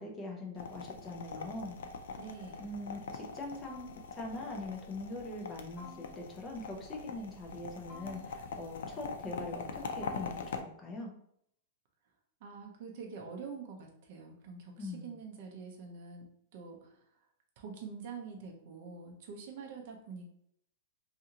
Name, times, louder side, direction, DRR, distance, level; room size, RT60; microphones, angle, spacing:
voice 1, 0.0-1.8 2.6-11.1 14.8-15.1, left 2 dB, 15° left, 0 dB, 0.4 m, -42 dB
sound 1, 0.6-10.6, left 5 dB, 85° left, 0.3 m, -43 dB
voice 2, 2.1-2.7 12.4-17.0 17.6-20.2, right 5 dB, 45° right, 1 dB, 0.5 m, -46 dB
sound 2, 3.6-4.5 5.8-6.6 7.9-8.7 10.0-10.8, left 3 dB, 35° left, 1.2 m, -54 dB
2.6 x 2.4 x 2.8 m, 0.70 s
supercardioid pair, 175°, 0 cm